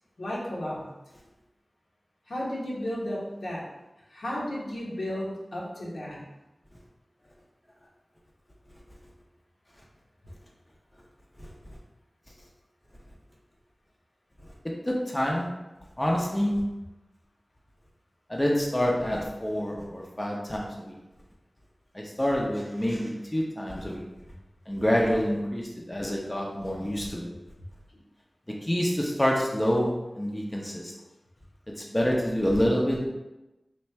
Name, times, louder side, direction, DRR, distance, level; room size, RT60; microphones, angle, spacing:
voice 1, 0.2-0.8 2.3-3.6 4.1-6.2, left 1 dB, 80° left, -5 dB, 1.1 m, -33 dB
voice 2, 14.9-15.5 16.0-16.6 18.3-20.9 21.9-24.0 24.7-27.3 28.7-30.8 31.9-33.1, equal, 20° left, -2 dB, 0.6 m, -27 dB
3.2 x 2.5 x 4.4 m, 0.99 s
wide cardioid pair, 65°, 0 cm